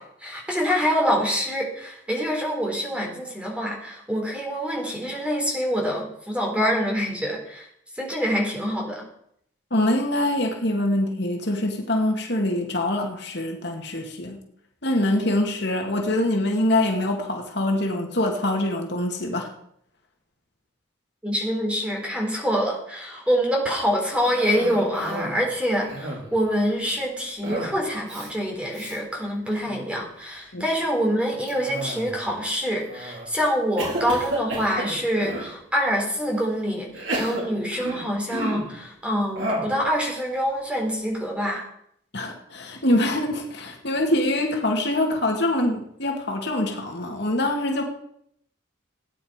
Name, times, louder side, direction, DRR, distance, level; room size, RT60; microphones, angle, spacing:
voice 1, 0.0-7.7 7.9-9.0 21.2-41.7, equal, 5° right, -1 dB, 3.9 m, -25 dB
voice 2, 9.7-14.4 14.8-19.5 30.5-30.6 42.1-47.8, left 1 dB, 60° left, 2 dB, 2.4 m, -24 dB
Cough, 24.2-25.4 25.7-26.4 27.4-27.8 28.1-28.3 28.7-29.0 29.5-29.9 31.5-32.3 32.9-33.3 33.8-35.5 36.2-36.3 36.9-38.7 39.3-39.8, right 1 dB, 70° right, 5.6 m, -32 dB
17.5 x 10.0 x 5.2 m, 0.70 s
head